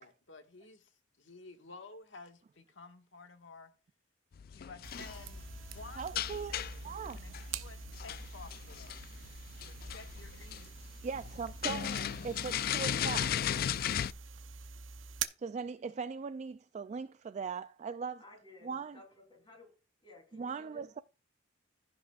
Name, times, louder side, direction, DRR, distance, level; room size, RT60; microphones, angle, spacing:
voice 1, 0.0-3.7 4.5-5.4 5.7-9.0 9.6-10.8 11.6-12.1 12.9-13.8, left 3 dB, 70° left, 1.7 m, -53 dB
sound 1, 4.3-14.1, left 9 dB, 50° left, 0.3 m, -37 dB
sound 2, 4.8-15.3, right 6 dB, 80° right, 0.7 m, -45 dB
Keyboard (musical), 5.1-10.3, right 2 dB, 5° left, 2.3 m, -68 dB
voice 2, 6.0-6.6 6.8-7.3 11.0-13.3 15.4-18.2 18.6-19.0 20.3-21.0, right 5 dB, 35° right, 0.3 m, -39 dB
voice 3, 18.2-19.7 20.0-20.8, left 2 dB, 25° left, 3.4 m, -56 dB
16.0 x 6.0 x 2.4 m
head